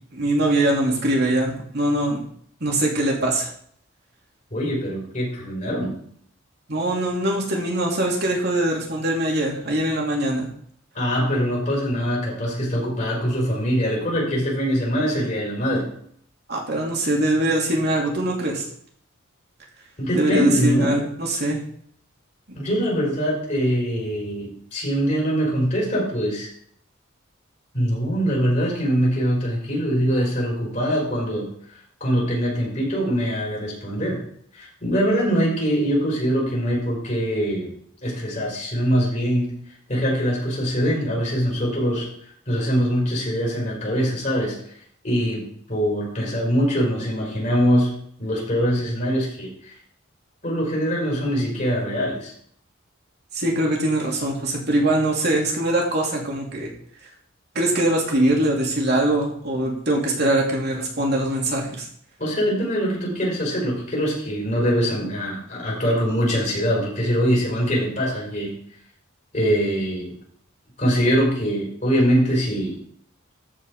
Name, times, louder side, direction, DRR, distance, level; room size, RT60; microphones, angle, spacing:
voice 1, 0.1-2.2 2.6-3.5 6.7-10.5 16.5-18.6 20.1-21.6 53.3-56.7 57.5-61.9, right 1 dB, 55° right, -1 dB, 3.0 m, -22 dB
voice 2, 4.5-6.0 10.9-15.9 20.0-20.9 22.5-26.5 27.7-31.5 32.0-34.2 34.5-37.7 38.0-39.5 39.9-42.1 42.5-44.6 45.0-47.9 48.2-49.7 50.4-52.3 62.2-68.5 69.3-70.1 70.8-72.7, equal, 40° left, -3 dB, 5.4 m, -23 dB
14.0 x 5.4 x 5.0 m, 0.63 s
head